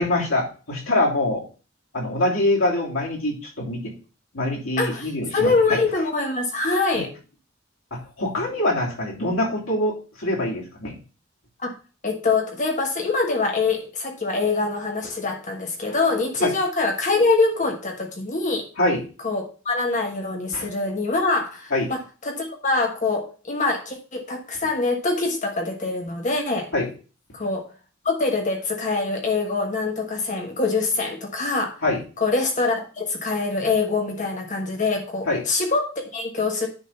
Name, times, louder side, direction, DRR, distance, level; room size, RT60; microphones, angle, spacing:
voice 1, 0.0-1.4 1.9-3.9 4.3-5.8 6.9-7.0 8.2-11.0 16.4-16.5 18.8-19.0 20.5-20.7 21.7-21.9 26.7-26.9 31.8-32.0 35.3-35.4, left 1 dB, 85° left, -2 dB, 3.1 m, -24 dB
voice 2, 4.8-7.1 11.6-11.7 12.0-18.7 19.2-26.7 27.3-27.6 28.0-31.8 32.2-36.7, left 3 dB, 35° left, 2 dB, 1.3 m, -24 dB
9.8 x 3.8 x 5.6 m, 0.35 s
head